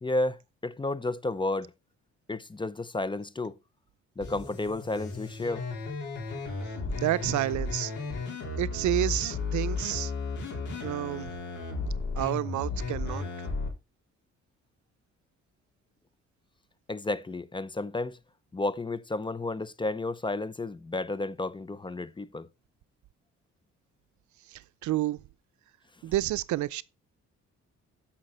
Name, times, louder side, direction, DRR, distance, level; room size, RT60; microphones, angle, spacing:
voice 1, 0.0-1.7 2.3-3.5 4.2-5.6 16.9-18.2 18.5-22.5, left 2 dB, 15° left, 0.6 m, -32 dB
sound 1, 4.2-13.7, left 4 dB, 80° left, 4.1 m, -34 dB
voice 2, 6.9-7.9 8.6-10.1 10.8-11.3 12.2-13.3 24.5-25.2 26.0-26.8, right 15 dB, 75° right, 0.6 m, -30 dB
14.5 x 5.8 x 4.2 m
cardioid pair, 90°, 30 cm